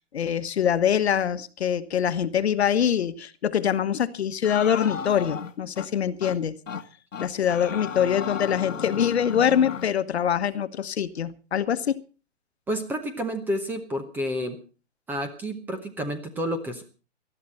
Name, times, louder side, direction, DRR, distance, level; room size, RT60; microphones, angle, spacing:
voice 1, 0.0-6.6 7.2-12.0, left 8 dB, 60° left, 13 dB, 1.3 m, -24 dB
sound 1, 4.4-5.9 6.2-6.4 6.7-6.8 7.1-9.9, left 7 dB, 90° left, 1.5 m, -34 dB
voice 2, 12.7-14.6 15.1-16.8, equal, 5° right, 8 dB, 0.9 m, -30 dB
19.0 x 13.5 x 4.2 m, 0.36 s
hypercardioid pair, 155°, 37 cm